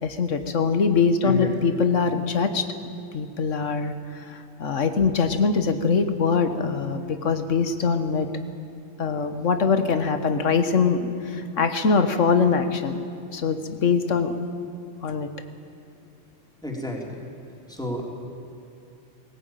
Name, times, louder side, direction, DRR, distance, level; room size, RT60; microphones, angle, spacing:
voice 1, 0.0-2.7 3.1-8.3 9.0-13.0 13.3-14.3 15.0-15.3, left 5 dB, 90° left, 9 dB, 1.6 m, -23 dB
voice 2, 16.6-17.2 17.7-18.0, left 1 dB, 5° left, -2 dB, 3.4 m, -31 dB
19.0 x 18.0 x 9.1 m, 2.7 s
omnidirectional pair, 1.2 m